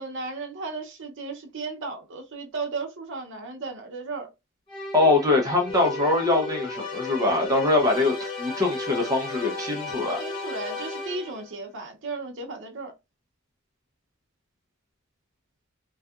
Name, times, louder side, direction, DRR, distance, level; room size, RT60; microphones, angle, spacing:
voice 1, 0.0-4.3 10.2-12.9, right 3 dB, 60° right, 0.7 m, -35 dB
sound 1, 4.7-11.5, left 3 dB, 25° left, 0.8 m, -34 dB
voice 2, 4.9-10.2, left 2 dB, 15° right, 0.5 m, -23 dB
2.7 x 2.3 x 2.3 m
head